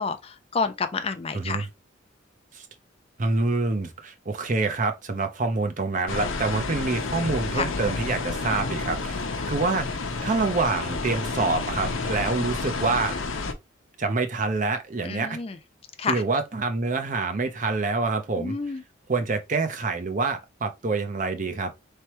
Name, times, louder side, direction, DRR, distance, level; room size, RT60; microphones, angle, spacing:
voice 1, 0.0-1.7 7.5-7.7 11.9-12.1 15.0-15.6 16.0-16.2 18.4-18.8, left 4 dB, 30° left, 0.4 m, -29 dB
voice 2, 1.3-1.6 2.5-2.7 3.2-9.9 10.2-13.1 14.0-15.4 16.0-18.6 19.1-21.7, right 3 dB, 40° right, 0.6 m, -26 dB
sound 1, 6.1-13.5, left 3 dB, 90° left, 0.8 m, -30 dB
4.3 x 3.3 x 3.0 m
head